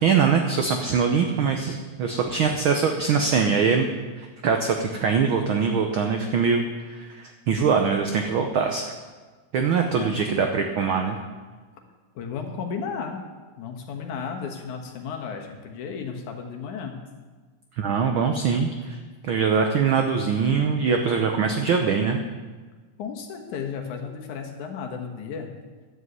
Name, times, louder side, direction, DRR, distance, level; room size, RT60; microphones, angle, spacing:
voice 1, 0.0-3.9 4.2-8.8 9.5-11.2 17.8-19.0 19.2-22.2, right 6 dB, 80° right, 4 dB, 1.1 m, -23 dB
voice 2, 9.9-10.3 12.2-13.2 13.6-17.0 23.0-25.5, left 6 dB, 85° left, 2 dB, 2.8 m, -34 dB
11.0 x 7.8 x 8.1 m, 1.4 s
omnidirectional pair, 3.4 m